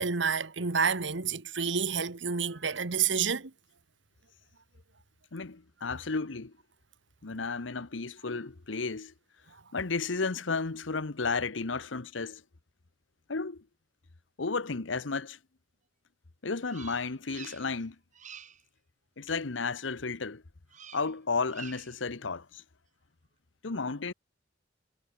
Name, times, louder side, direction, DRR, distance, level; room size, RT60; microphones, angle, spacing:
voice 1, 0.0-3.5, right 6 dB, 70° right, 1.4 m, -29 dB
voice 2, 5.3-6.5 7.2-9.1 9.7-12.4 13.3-13.6 14.4-15.4 16.4-18.0 19.2-20.4 20.9-22.6 23.6-24.1, left 4 dB, 75° left, 1.1 m, -33 dB
Bird vocalization bird call bird song, 16.7-17.8 18.1-18.6 20.7-21.2 21.5-22.0, right 8 dB, 40° right, 1.8 m, -48 dB
head